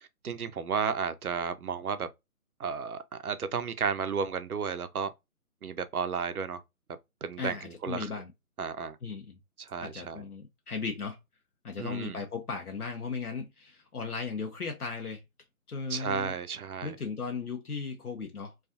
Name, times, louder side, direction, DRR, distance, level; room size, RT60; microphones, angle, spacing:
voice 1, 0.2-2.1 2.6-5.1 5.6-6.6 7.2-8.1 8.6-9.0 9.6-10.2 11.8-12.2 15.9-17.0, right 6 dB, 80° right, 0.5 m, -33 dB
voice 2, 7.4-8.3 9.0-9.4 9.8-11.2 11.6-15.2 15.7-16.3 16.8-18.5, left 5 dB, 85° left, 0.7 m, -36 dB
2.4 x 2.3 x 2.5 m
figure-of-eight pair, 150°, 44 cm